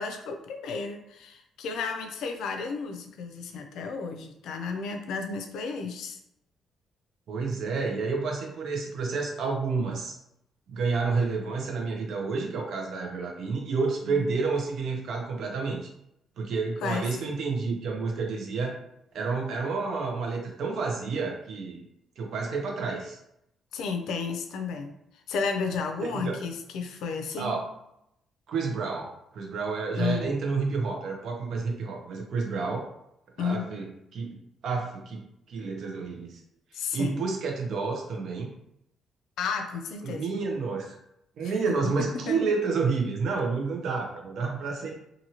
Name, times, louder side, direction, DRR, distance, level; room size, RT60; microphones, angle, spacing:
voice 1, 0.0-6.2 14.0-14.3 16.8-17.0 23.7-24.9 25.3-27.5 30.0-30.3 33.4-33.7 36.7-37.2 39.4-40.2 41.7-42.4, left 5 dB, 80° left, 5 dB, 0.4 m, -32 dB
voice 2, 7.3-10.2 10.7-15.9 16.4-18.8 19.1-21.8 22.2-23.2 26.0-26.4 27.4-27.7 28.5-32.9 33.4-34.4 34.6-36.4 36.9-38.5 40.0-41.0 41.4-45.0, right 4 dB, 70° right, 1 dB, 0.7 m, -30 dB
2.8 x 2.6 x 2.8 m, 0.79 s
cardioid pair, 90°, 0 cm